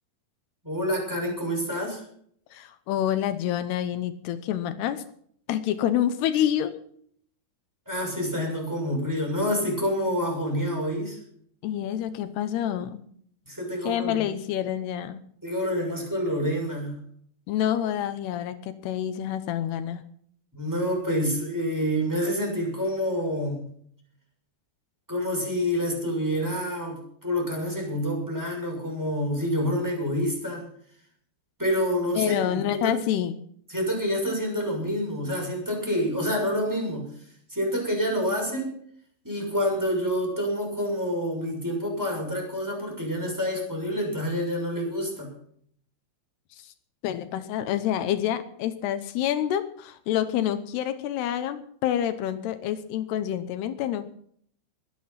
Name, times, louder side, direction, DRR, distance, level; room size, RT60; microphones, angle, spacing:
voice 1, 0.6-2.0 7.9-11.2 13.5-14.3 15.4-17.0 20.5-23.6 25.1-30.6 31.6-33.0 33.7-37.1 37.5-38.7 39.2-45.3, equal, 5° right, 0 dB, 6.2 m, -27 dB
voice 2, 2.5-5.0 5.5-6.7 11.6-13.0 13.8-15.2 17.5-20.0 32.1-33.4 47.0-54.1, left 11 dB, 80° left, 11 dB, 3.0 m, -27 dB
22.5 x 9.5 x 5.8 m, 0.63 s
omnidirectional pair, 4.7 m